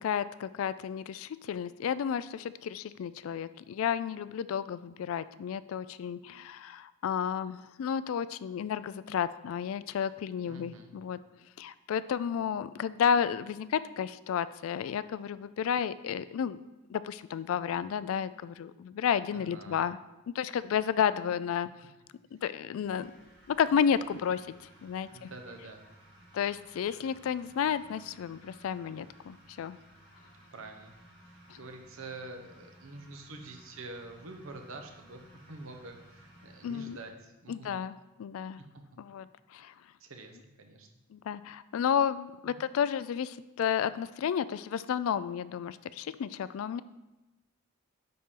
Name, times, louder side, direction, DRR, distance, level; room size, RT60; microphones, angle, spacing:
voice 1, 0.0-11.2 11.6-16.6 16.9-20.0 20.3-21.7 22.3-23.1 23.5-24.5 24.8-25.3 26.3-29.8 31.5-31.6 36.6-37.0 37.5-38.6 39.0-39.3 39.5-39.7 41.1-46.8, left 8 dB, 75° left, 16 dB, 0.3 m, -32 dB
voice 2, 10.4-10.9 19.3-19.9 25.1-25.8 30.5-30.9 31.2-35.2 35.5-37.8 38.6-38.8 40.0-40.9 42.4-42.7, right 2 dB, 80° right, 4 dB, 1.0 m, -46 dB
sound 1, 22.8-37.1, right 1 dB, 60° right, 2.0 m, -57 dB
9.4 x 4.2 x 3.7 m, 1.0 s
head